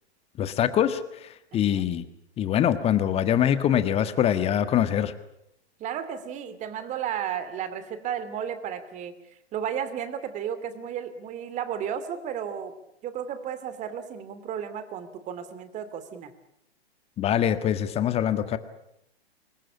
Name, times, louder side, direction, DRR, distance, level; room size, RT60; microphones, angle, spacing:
voice 1, 0.4-2.0 2.4-5.1 17.2-18.6, left 10 dB, 20° left, 12 dB, 1.6 m, -24 dB
voice 2, 1.5-1.9 5.8-9.1 9.5-12.7 13.0-16.3, right 8 dB, 20° right, 12 dB, 2.6 m, -33 dB
26.5 x 21.0 x 8.6 m, 0.80 s
figure-of-eight pair, 115°, 32 cm